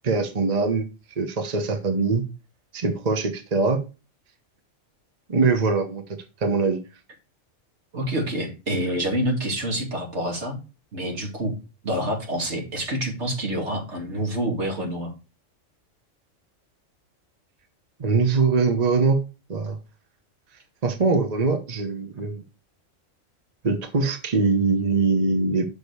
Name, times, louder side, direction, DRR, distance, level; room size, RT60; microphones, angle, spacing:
voice 1, 0.0-0.9 1.2-2.2 2.7-3.8 5.3-6.0 6.4-6.8 18.0-19.2 19.5-19.8 20.8-22.4 23.6-25.7, right 4 dB, 35° right, 7 dB, 1.1 m, -22 dB
voice 2, 7.9-10.6 10.9-11.6 11.8-15.1, right 1 dB, 65° right, 2 dB, 2.6 m, -27 dB
6.4 x 5.1 x 6.5 m, 0.31 s
omnidirectional pair, 1.3 m